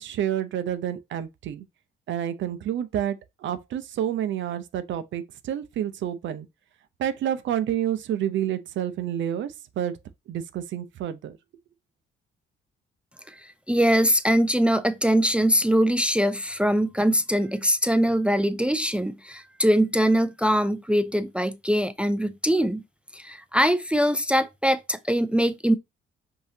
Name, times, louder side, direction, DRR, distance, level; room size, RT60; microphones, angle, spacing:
voice 1, 0.0-1.6 2.1-6.5 7.0-10.0 10.3-11.4, right 10 dB, 70° right, 0.6 m, -29 dB
voice 2, 13.3-22.8 23.1-25.8, equal, 5° right, 0.4 m, -22 dB
5.5 x 2.7 x 2.7 m
cardioid pair, 90°, 20 cm